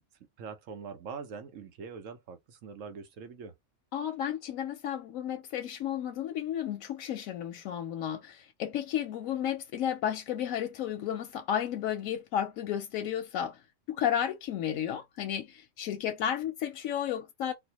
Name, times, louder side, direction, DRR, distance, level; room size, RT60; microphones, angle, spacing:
voice 1, 0.4-3.5, right 5 dB, 75° right, 1.2 m, -43 dB
voice 2, 3.9-13.6 13.9-17.5, left 10 dB, 90° left, 1.0 m, -33 dB
4.1 x 2.4 x 2.9 m
omnidirectional pair, 1.4 m